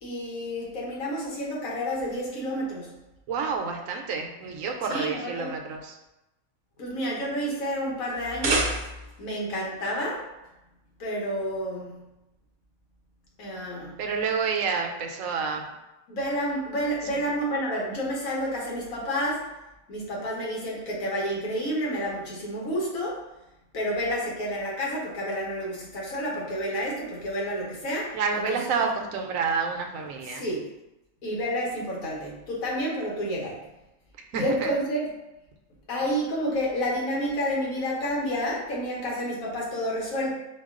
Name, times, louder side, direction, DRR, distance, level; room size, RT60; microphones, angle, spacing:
voice 1, 0.0-2.9 4.9-5.5 6.8-8.8 9.2-10.2 11.0-12.0 13.4-14.0 16.1-19.4 19.9-23.2 23.7-28.8 30.3-30.7 31.2-33.6 34.3-35.1 35.9-40.3, equal, 80° left, -3 dB, 1.5 m, -30 dB
voice 2, 3.3-5.9 14.0-15.6 17.1-17.2 28.1-30.4 34.3-34.7, right 5 dB, 75° right, 3 dB, 1.0 m, -29 dB
sound 1, 8.1-9.3, right 2 dB, 50° right, 0.6 m, -28 dB
4.6 x 2.3 x 3.6 m, 0.96 s
omnidirectional pair, 1.4 m